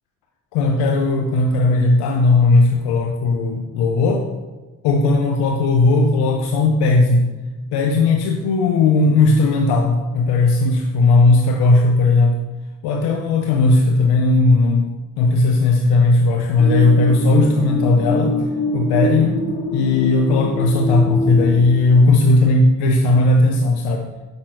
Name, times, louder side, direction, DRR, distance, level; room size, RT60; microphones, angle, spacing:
voice 1, 0.5-4.3 4.8-7.3 7.7-12.4 12.8-18.3 18.7-19.4 19.7-24.1, left 3 dB, 85° left, 3 dB, 0.7 m, -16 dB
sound 1, 16.6-21.6, equal, 65° left, 1.8 m, -24 dB
6.4 x 5.8 x 4.5 m, 1.2 s
supercardioid pair, 60°, 38 cm